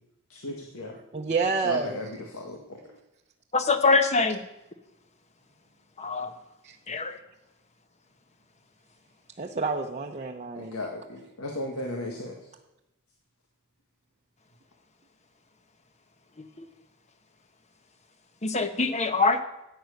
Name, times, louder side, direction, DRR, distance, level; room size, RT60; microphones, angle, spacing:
voice 1, 0.3-1.0 1.6-2.8 10.6-12.4, left 2 dB, 85° left, 1 dB, 1.9 m, -36 dB
voice 2, 0.9-2.0 6.6-6.8 9.4-10.8, right 4 dB, 35° right, 1 dB, 0.8 m, -29 dB
voice 3, 3.5-4.4 6.0-6.3 6.9-7.2 18.4-19.4, left 3 dB, 30° left, 9 dB, 1.1 m, -23 dB
14.5 x 9.4 x 6.6 m, 0.92 s
head